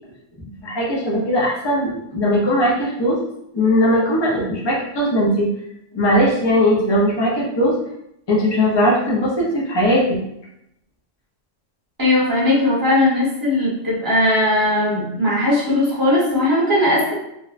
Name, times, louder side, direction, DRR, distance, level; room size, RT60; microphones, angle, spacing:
voice 1, 0.6-3.2 3.5-5.5 5.9-7.7 8.3-10.0, equal, 40° left, -4 dB, 0.3 m, -19 dB
voice 2, 12.0-17.1, left 1 dB, 20° right, -6 dB, 0.8 m, -18 dB
2.9 x 2.1 x 2.4 m, 0.80 s
omnidirectional pair, 1.3 m